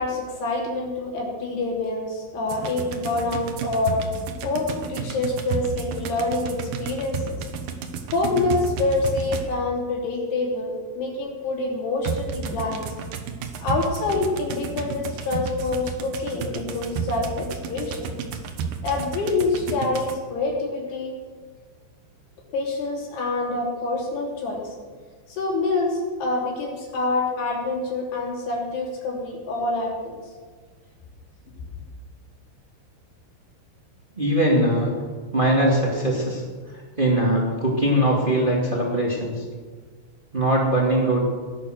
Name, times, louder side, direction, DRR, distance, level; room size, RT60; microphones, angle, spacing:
voice 1, 0.0-4.0 4.4-7.4 8.1-12.8 13.6-18.1 18.8-21.2 22.5-24.6 25.3-30.2, left 3 dB, 55° left, -2 dB, 4.9 m, -26 dB
sound 1, 2.5-9.7 12.0-20.1, right 6 dB, 90° right, 2.0 m, -32 dB
voice 2, 34.2-34.9 35.3-36.4 36.7-39.4 40.3-41.2, right 1 dB, 60° right, -3 dB, 0.5 m, -21 dB
18.0 x 12.0 x 6.6 m, 1.6 s
omnidirectional pair, 5.8 m